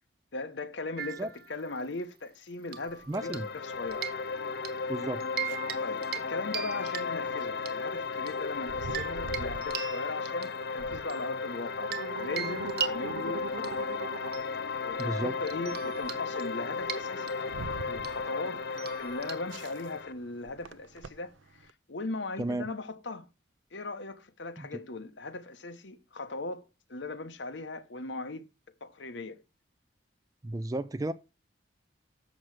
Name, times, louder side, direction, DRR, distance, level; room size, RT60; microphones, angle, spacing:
voice 1, 0.3-4.1 5.8-13.9 14.8-17.4 17.9-18.7 19.0-23.3 23.7-28.4 28.8-29.4, left 3 dB, 75° left, 1.0 m, -39 dB
sound 1, 1.0-2.0 2.7-3.6 3.9-4.8 5.2-5.8 6.0-6.3 6.5-7.7 8.3-12.1 12.4-20.0, right 8 dB, 55° right, 1.2 m, -40 dB
sound 2, 2.9-21.7, right 4 dB, 85° right, 0.5 m, -45 dB
sound 3, 3.1-20.1, left 4 dB, 55° left, 0.6 m, -35 dB
voice 2, 3.1-3.5 4.9-5.2 15.0-15.4 22.4-22.6 24.6-24.8 30.4-31.1, right 1 dB, 20° right, 0.3 m, -33 dB
7.4 x 6.2 x 4.8 m
head